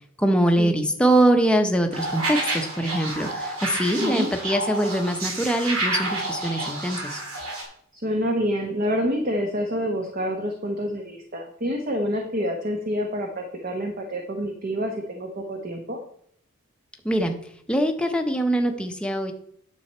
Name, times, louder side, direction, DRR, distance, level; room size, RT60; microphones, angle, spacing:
voice 1, 0.2-7.2 17.0-17.4 17.7-19.3, right 1 dB, 5° left, 4 dB, 0.7 m, -23 dB
sound 1, 1.9-7.6, right 2 dB, 85° right, 2.6 m, -29 dB
voice 2, 4.0-4.3 7.9-16.0, equal, 40° right, 2 dB, 0.9 m, -27 dB
9.4 x 7.0 x 4.4 m, 0.66 s
head